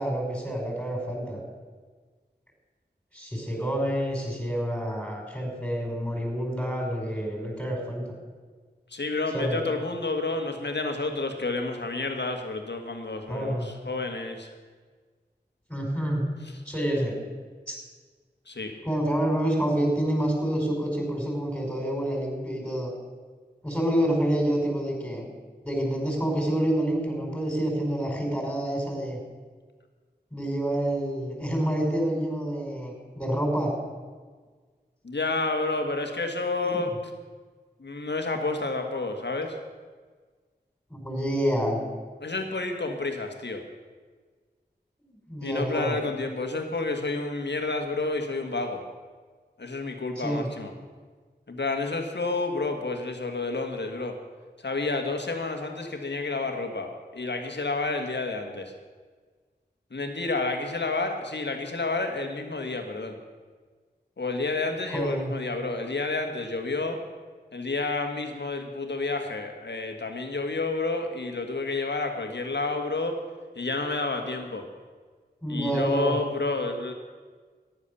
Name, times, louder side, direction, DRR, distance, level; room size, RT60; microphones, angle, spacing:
voice 1, 0.0-1.4 3.1-8.0 9.3-9.6 13.3-13.7 15.7-16.3 16.7-17.2 17.7-17.8 18.9-22.9 23.6-25.3 25.6-29.2 30.3-33.7 36.6-36.9 40.9-41.8 45.0-46.0 50.2-50.5 64.9-65.3 75.4-76.2, right 1 dB, 10° left, -2 dB, 5.3 m, -28 dB
voice 2, 8.9-14.5 18.5-18.7 35.0-36.9 37.8-39.6 42.2-43.6 45.4-48.8 49.6-50.7 51.5-54.2 54.6-58.7 59.9-63.2 64.2-67.0 67.5-73.2 73.6-74.6 75.5-76.9, left 3 dB, 90° left, 4 dB, 1.7 m, -30 dB
14.0 x 10.5 x 6.9 m, 1.5 s
wide cardioid pair, 40°, 17 cm